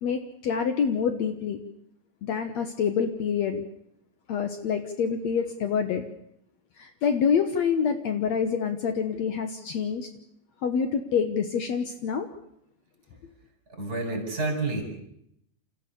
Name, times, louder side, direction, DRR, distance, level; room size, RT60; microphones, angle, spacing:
voice 1, 0.0-1.6 2.2-3.6 4.3-6.1 6.8-10.1 10.6-12.3, left 6 dB, 65° left, 7 dB, 2.2 m, -27 dB
voice 2, 13.7-14.8, right 2 dB, 25° right, 3 dB, 5.5 m, -29 dB
28.5 x 14.5 x 6.9 m, 0.74 s
omnidirectional pair, 3.6 m